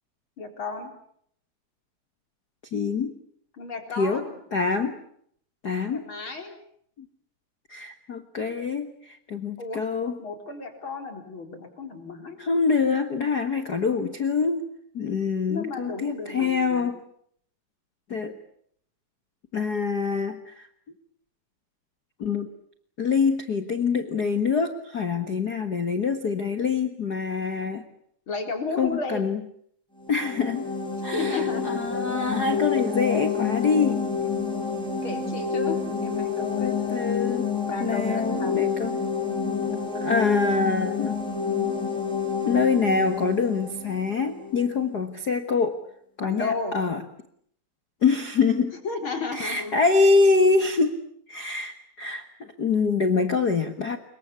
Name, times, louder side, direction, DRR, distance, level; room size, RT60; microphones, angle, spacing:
voice 1, 0.4-0.9 3.6-4.4 5.9-6.6 9.6-9.9 10.2-12.5 15.5-16.9 28.3-29.3 31.1-31.8 35.0-35.8 36.0-36.8 37.7-38.7 46.2-46.8 48.8-49.8, left 4 dB, 35° left, 5 dB, 4.5 m, -33 dB
voice 2, 2.7-3.2 4.0-5.0 5.6-6.1 7.0-7.1 7.7-10.2 12.4-14.7 14.9-17.0 18.1-18.4 19.5-20.7 22.2-22.5 23.0-27.8 28.8-29.4 30.1-30.7 31.0-34.0 36.6-37.5 37.8-39.0 39.9-41.2 42.4-45.8 46.2-47.0 48.0-48.8 49.3-51.0 51.3-54.0, left 4 dB, 85° left, 9 dB, 0.8 m, -25 dB
sound 1, 30.0-44.7, left 6 dB, ahead, 5.8 m, -28 dB
26.5 x 23.0 x 8.5 m, 0.66 s
omnidirectional pair, 4.3 m